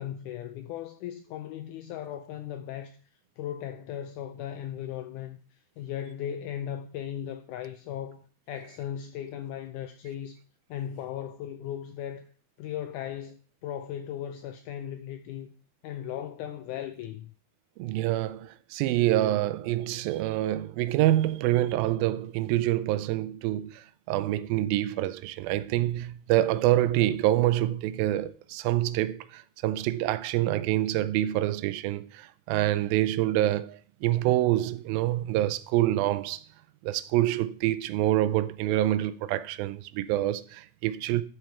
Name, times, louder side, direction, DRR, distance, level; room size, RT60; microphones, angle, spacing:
voice 1, 0.0-3.0 3.4-10.4 10.7-12.3 12.6-15.5 15.8-17.3, left 10 dB, 85° left, 1.8 m, -37 dB
voice 2, 17.8-36.4 36.8-41.2, right 14 dB, 85° right, 2.4 m, -26 dB
12.5 x 4.8 x 4.5 m
omnidirectional pair, 4.2 m